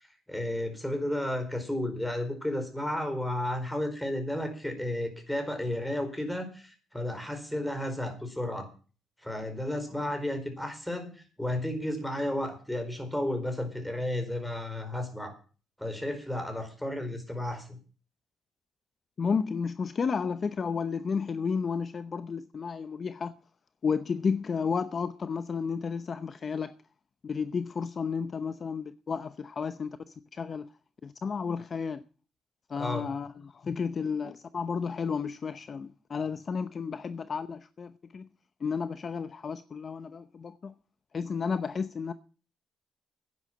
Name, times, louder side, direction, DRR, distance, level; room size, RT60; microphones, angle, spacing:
voice 1, 0.3-8.7 9.2-15.3 15.8-17.7 32.8-33.1, left 1 dB, 5° left, 4.6 m, -33 dB
voice 2, 19.2-23.3 23.8-26.7 27.2-30.0 30.3-30.6 31.0-32.0 32.7-38.3 38.6-40.7 41.1-42.1, left 5 dB, 45° left, 0.7 m, -32 dB
10.5 x 9.5 x 7.7 m
cardioid pair, 90°, 0 cm